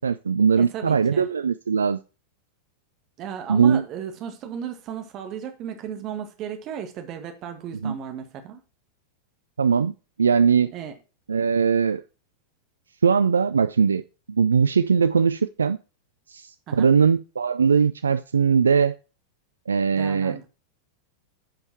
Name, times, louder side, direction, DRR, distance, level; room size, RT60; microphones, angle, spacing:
voice 1, 0.0-2.0 3.5-3.8 7.8-7.9 9.6-10.7 11.3-12.0 13.0-14.0 14.3-15.8 16.3-19.0 19.7-20.4, right 6 dB, 70° right, 0.4 m, -20 dB
voice 2, 0.6-1.3 3.2-8.6 10.7-10.9 16.7-16.9 19.9-20.5, right 8 dB, 35° right, 1.9 m, -35 dB
10.5 x 5.5 x 4.4 m
figure-of-eight pair, 90°, 0 cm